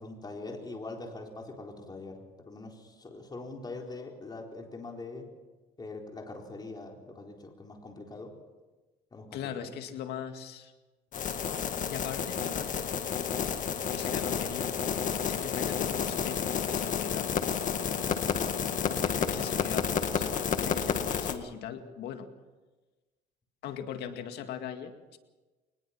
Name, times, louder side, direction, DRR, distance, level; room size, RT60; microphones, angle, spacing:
voice 1, 0.0-5.3 5.8-8.3 9.1-9.7 18.0-18.3, left 3 dB, 25° left, 1 dB, 4.2 m, -43 dB
voice 2, 9.3-10.7 11.9-12.9 13.9-14.7 15.2-17.4 18.9-22.3 23.6-25.2, left 8 dB, 75° left, 6 dB, 2.1 m, -40 dB
sound 1, 11.1-21.4, left 7 dB, 50° left, 1.9 m, -30 dB
23.5 x 20.5 x 6.0 m, 1.2 s
cardioid pair, 110°, 17 cm